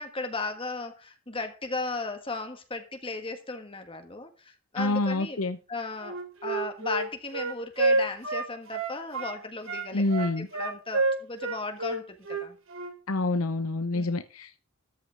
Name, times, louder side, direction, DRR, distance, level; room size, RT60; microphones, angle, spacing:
voice 1, 0.0-5.4 5.7-12.6 13.9-14.2, left 3 dB, 25° left, 6 dB, 1.5 m, -36 dB
voice 2, 4.8-5.6 9.9-10.5 13.1-14.6, left 2 dB, 85° left, 10 dB, 0.9 m, -27 dB
Wind instrument woodwind instrument, 6.0-9.4 9.7-12.9, right 3 dB, 70° right, 3.4 m, -29 dB
14.0 x 10.5 x 3.5 m, 0.34 s
head